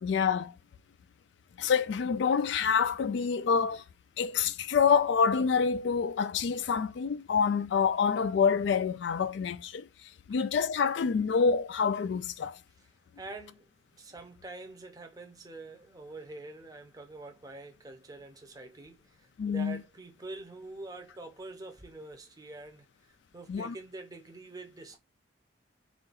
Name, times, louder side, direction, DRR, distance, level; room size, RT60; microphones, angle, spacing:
voice 1, 0.0-0.5 1.6-3.8 4.2-9.9 10.3-12.6 19.4-19.8 23.5-23.7, left 6 dB, 60° left, 0.3 m, -27 dB
voice 2, 13.2-25.0, right 2 dB, 20° right, 0.6 m, -46 dB
3.7 x 2.5 x 3.9 m
head